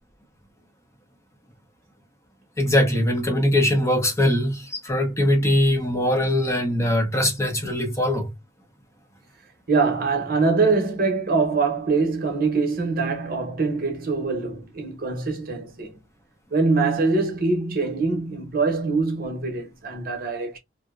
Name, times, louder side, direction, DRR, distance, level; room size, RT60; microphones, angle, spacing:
voice 1, 2.6-8.3, left 1 dB, 15° left, 0.7 m, -21 dB
voice 2, 9.7-16.0 16.5-20.6, right 4 dB, 50° right, 0.8 m, -23 dB
2.7 x 2.0 x 2.3 m
head